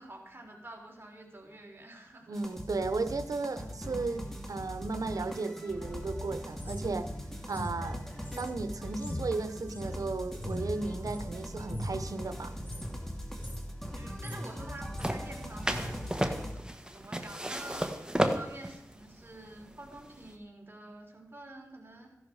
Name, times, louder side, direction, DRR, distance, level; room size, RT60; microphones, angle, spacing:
voice 1, 0.0-2.4 13.9-16.4 16.9-17.9 18.2-22.2, right 1 dB, 40° right, 0 dB, 3.8 m, -48 dB
sound 1, 2.3-16.5, equal, 5° left, 2.7 m, -41 dB
voice 2, 2.3-7.1 7.5-8.1 8.4-12.5, right 3 dB, 90° right, 10 dB, 0.9 m, -35 dB
sound 2, 6.5-11.3 11.6-12.0 12.5-12.9 13.2-13.7 14.0-14.5 14.8-15.2 15.7-15.9, left 1 dB, 30° left, 1.8 m, -40 dB
sound 3, 15.0-20.3, right 1 dB, 15° right, 1.5 m, -33 dB
15.5 x 11.5 x 4.9 m, 0.83 s
wide cardioid pair, 55°, 6 cm